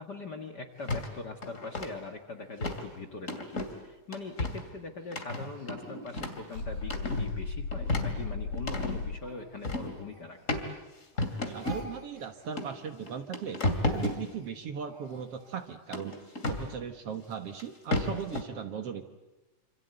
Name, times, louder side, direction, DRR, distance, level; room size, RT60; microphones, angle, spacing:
voice 1, 0.0-10.4, left 3 dB, 40° left, 5 dB, 1.7 m, -42 dB
sound 1, 0.9-1.1 1.4-1.9 2.6-2.8 3.3-3.7 4.1-4.6 5.1-6.4 6.8-7.3 7.7-9.0 9.6-9.9 10.5-10.6 11.2-11.9 12.6-12.7 13.1-14.2 15.9-16.7 17.6-17.7 17.9-18.4, left 2 dB, 25° left, 2.6 m, -32 dB
Speech, 4.4-7.5 8.1-10.9 11.1-15.6, right 2 dB, 15° right, 5.0 m, -51 dB
sound 2, 6.6-9.2, left 4 dB, 85° left, 4.1 m, -35 dB
voice 2, 11.4-13.6 13.9-16.2 16.5-19.1, right 7 dB, 55° right, 7 dB, 2.1 m, -38 dB
27.0 x 26.5 x 8.1 m, 1.0 s
omnidirectional pair, 3.5 m